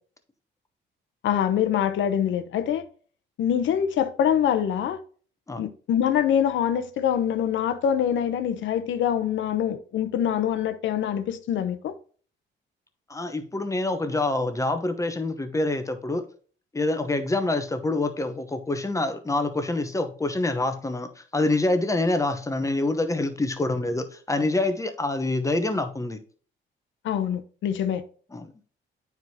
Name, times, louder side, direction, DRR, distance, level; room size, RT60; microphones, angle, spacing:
voice 1, 1.2-2.9 3.4-5.0 5.6-11.9 27.0-28.0, left 9 dB, 75° left, 0.7 m, -24 dB
voice 2, 13.1-16.2 16.7-26.2 28.3-28.5, left 2 dB, 15° left, 0.9 m, -26 dB
9.0 x 4.7 x 2.8 m
cardioid pair, 90°, 20 cm